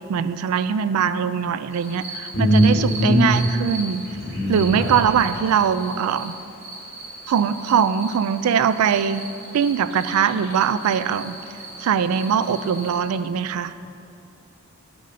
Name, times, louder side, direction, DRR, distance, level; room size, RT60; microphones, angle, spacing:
voice 1, 0.1-4.1 4.5-6.3 7.3-9.3 9.5-11.4 11.8-13.8, right 7 dB, 80° right, 14 dB, 0.3 m, -21 dB
sound 1, 1.7-13.0, right 2 dB, 60° right, 1.9 m, -38 dB
voice 2, 2.3-3.4 4.1-5.0, equal, 40° left, -3 dB, 1.9 m, -20 dB
9.1 x 5.3 x 5.4 m, 2.6 s
head